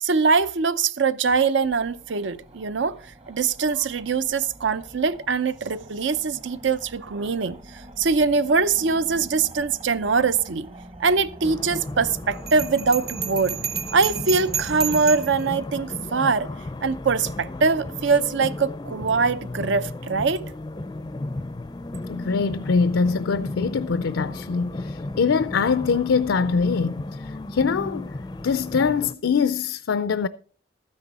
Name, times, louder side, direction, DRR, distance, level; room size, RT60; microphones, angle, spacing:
voice 1, 0.0-3.0 3.3-10.7 11.0-13.6 13.9-16.5 16.8-20.4, right 4 dB, 75° right, 0.6 m, -23 dB
sound 1, 1.6-15.0, right 1 dB, 30° right, 1.1 m, -45 dB
sound 2, 11.4-29.1, left 2 dB, 20° left, 0.4 m, -35 dB
Bell, 12.5-15.4, right 7 dB, 55° right, 1.3 m, -31 dB
voice 2, 22.1-28.1 28.4-30.3, left 5 dB, 85° left, 0.4 m, -23 dB
13.0 x 9.7 x 4.1 m
head